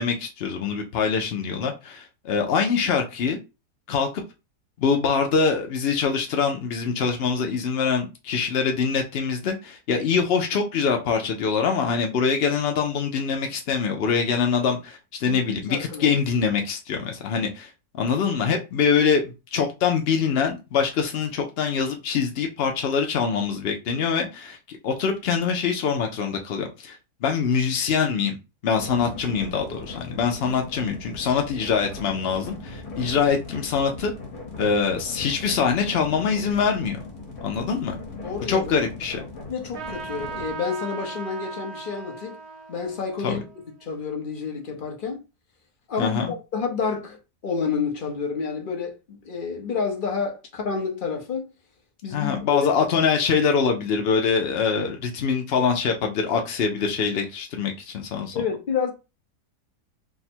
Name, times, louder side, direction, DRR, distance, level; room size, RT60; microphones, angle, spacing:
voice 1, 0.0-3.4 3.9-4.2 4.8-28.4 28.6-34.1 34.6-37.0 37.4-37.9 38.5-39.2 43.2-43.4 46.0-46.3 52.1-58.4, left 6 dB, 85° left, 0.5 m, -24 dB
voice 2, 15.2-16.1 38.2-38.7 39.5-42.4 42.7-43.5 43.8-45.2 45.9-47.2 47.4-51.5 52.0-52.7 58.3-58.9, left 5 dB, 40° left, 0.8 m, -29 dB
sound 1, 28.7-40.5, left 3 dB, 65° left, 1.6 m, -39 dB
Trumpet, 39.7-44.7, right 5 dB, 60° right, 0.7 m, -39 dB
3.5 x 2.1 x 4.2 m
omnidirectional pair, 1.7 m